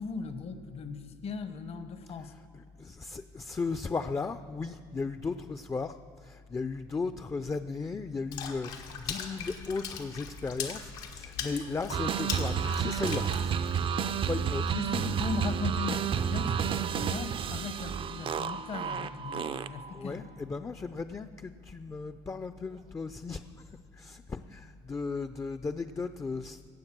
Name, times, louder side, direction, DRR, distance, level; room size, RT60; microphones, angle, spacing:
voice 1, 0.0-2.3 14.7-20.2, left 4 dB, 50° left, 10 dB, 1.0 m, -38 dB
voice 2, 2.1-13.9 14.3-14.8 16.6-17.0 19.9-23.7 23.9-26.6, left 4 dB, 20° left, 10 dB, 0.5 m, -36 dB
Water / Splash splatter, 8.3-14.1, left 7 dB, 85° left, 1.5 m, -40 dB
sound 1, 11.9-20.0, right 7 dB, 40° right, 0.5 m, -31 dB
17.0 x 7.1 x 6.1 m, 2.3 s
supercardioid pair, 80°, 13 cm